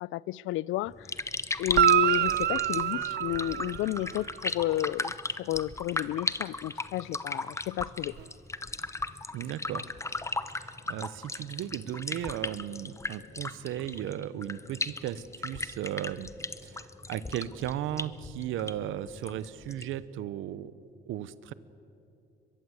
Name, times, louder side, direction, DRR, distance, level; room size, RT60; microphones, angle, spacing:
voice 1, 0.0-1.1 1.6-8.1, left 16 dB, 90° left, 0.4 m, -32 dB
sound 1, 0.9-20.0, left 2 dB, 15° left, 0.8 m, -37 dB
Guitar, 1.7-4.3 8.1-8.2, right 12 dB, 55° right, 0.5 m, -26 dB
voice 2, 9.3-9.8 10.5-16.3 16.6-20.7 21.1-21.5, right 11 dB, 90° right, 0.8 m, -36 dB
22.5 x 22.0 x 8.0 m
cardioid pair, 90°, 20 cm